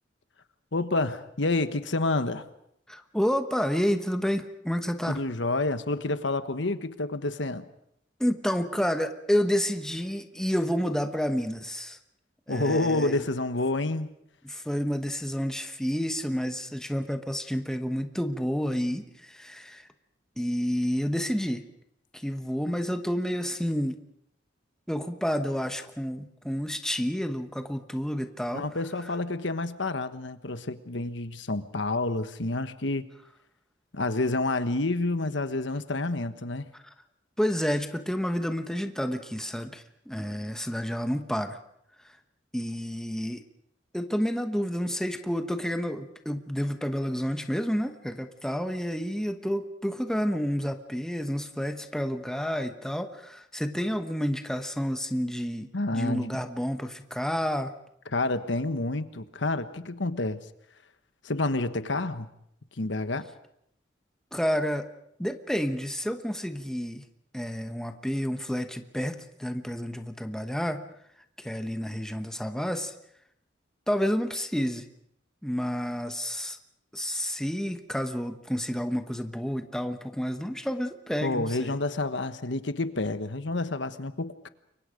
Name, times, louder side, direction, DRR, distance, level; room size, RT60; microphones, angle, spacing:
voice 1, 0.7-2.5 5.1-7.6 12.5-14.1 28.5-33.0 33.9-36.7 55.7-56.4 58.1-60.4 61.2-62.3 62.8-63.3 81.2-84.5, left 2 dB, 75° left, 11 dB, 1.3 m, -29 dB
voice 2, 2.9-5.3 8.2-12.0 12.5-13.2 14.4-19.9 20.4-21.7 22.1-24.0 24.9-29.1 36.7-36.9 37.4-41.6 42.0-42.2 42.5-43.4 43.9-57.7 64.3-64.9 65.2-67.0 67.3-70.9 71.4-72.9 73.9-74.9 75.4-76.6 76.9-81.8, equal, 5° left, 7 dB, 1.1 m, -30 dB
29.0 x 23.5 x 5.2 m, 0.74 s
head